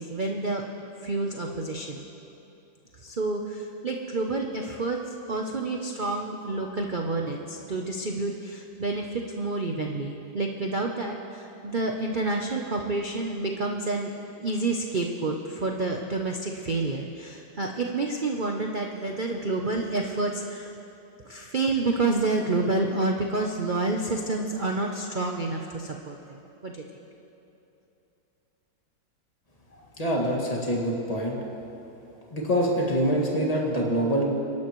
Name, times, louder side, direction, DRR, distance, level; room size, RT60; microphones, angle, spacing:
voice 1, 0.0-2.0 2.9-5.0 5.3-14.1 14.4-20.7 21.2-26.4 26.6-26.8, right 2 dB, 85° right, 2 dB, 0.4 m, -29 dB
voice 2, 30.0-31.4 32.3-34.2, equal, 20° left, -3 dB, 1.9 m, -25 dB
26.0 x 11.5 x 3.1 m, 2.9 s
omnidirectional pair, 2.0 m